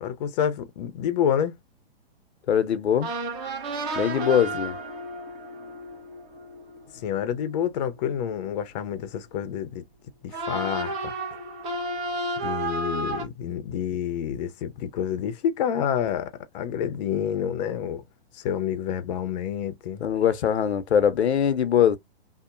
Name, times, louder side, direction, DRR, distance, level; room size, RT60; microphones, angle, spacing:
voice 1, 0.0-1.6 7.0-9.8 10.2-11.1 12.4-18.0 18.4-20.0, left 9 dB, 40° left, 0.6 m, -28 dB
voice 2, 2.5-3.1 3.9-4.8 20.0-22.0, left 9 dB, 85° left, 0.6 m, -22 dB
sound 1, 3.0-7.8 10.3-13.2, right 2 dB, 30° right, 0.9 m, -32 dB
2.8 x 2.0 x 2.5 m
hypercardioid pair, 130°, 32 cm